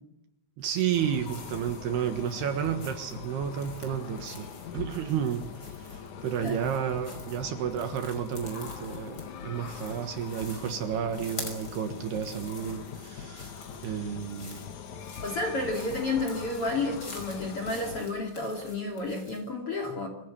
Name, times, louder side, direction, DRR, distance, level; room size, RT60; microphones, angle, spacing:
sound 1, 0.6-19.5, left 2 dB, 20° left, 5.6 m, -48 dB
voice 1, 0.6-5.5 5.8-14.7, right 8 dB, 65° right, 8 dB, 3.1 m, -32 dB
sound 2, 0.9-18.1, left 6 dB, 60° left, 2.0 m, -42 dB
voice 2, 15.2-20.1, left 2 dB, 40° left, 5 dB, 2.6 m, -31 dB
25.0 x 16.0 x 10.0 m, 0.83 s
omnidirectional pair, 5.6 m